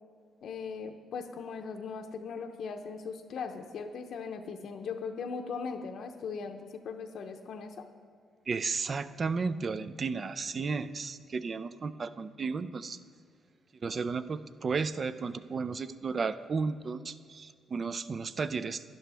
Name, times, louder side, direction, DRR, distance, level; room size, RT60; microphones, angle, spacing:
voice 1, 0.4-7.9, left 5 dB, 65° left, 5 dB, 0.7 m, -39 dB
voice 2, 8.5-13.0 13.8-18.8, right 4 dB, 40° right, 14 dB, 0.4 m, -33 dB
11.5 x 10.5 x 3.4 m, 2.3 s
cardioid pair, 90°, 0 cm